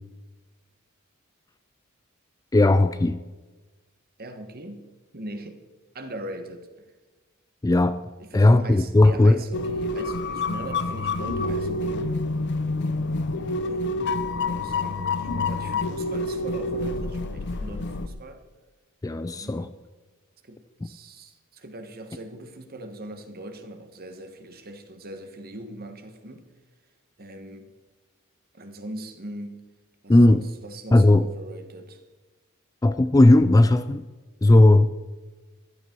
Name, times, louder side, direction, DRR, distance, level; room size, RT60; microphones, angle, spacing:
voice 1, 2.5-3.2 7.6-8.0 8.3-9.4 19.0-19.7 20.8-20.9 30.1-30.4 30.9-31.2 32.8-34.0 34.4-34.9, left 2 dB, 15° left, 11 dB, 0.4 m, -17 dB
voice 2, 4.2-4.9 5.1-5.6 5.9-6.9 8.2-12.1 13.6-18.4 19.4-19.7 20.4-26.5 27.2-27.7 28.5-29.6 30.0-32.0, right 1 dB, 45° right, 7 dB, 1.6 m, -40 dB
sound 1, 9.5-18.1, left 2 dB, 55° left, 0.7 m, -28 dB
15.0 x 12.0 x 4.7 m, 1.2 s
head